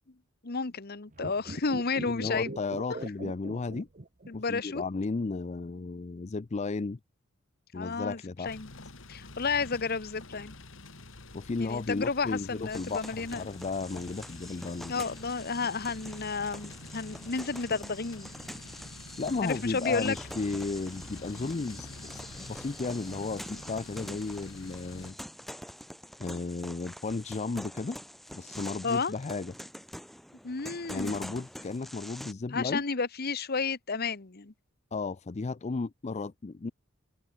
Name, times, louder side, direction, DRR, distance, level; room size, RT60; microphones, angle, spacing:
voice 1, 0.4-2.6 2.9-3.0 4.3-4.8 7.7-8.7 9.1-10.5 11.6-13.4 14.9-18.3 19.4-20.2 28.8-29.1 30.4-31.3 32.5-34.5, left 4 dB, 45° left, 1.1 m, -32 dB
sound 1, 1.1-4.5 4.8-4.9, right 2 dB, 40° right, 1.1 m, -41 dB
voice 2, 2.1-3.9 4.3-7.0 7.7-8.6 11.3-14.9 19.2-25.2 26.2-28.0 28.3-29.5 30.9-32.9 34.9-36.7, left 3 dB, 30° left, 0.4 m, -34 dB
sound 2, 8.4-25.1, left 2 dB, 65° left, 2.6 m, -48 dB
sound 3, 12.7-32.3, equal, ahead, 3.7 m, -45 dB
head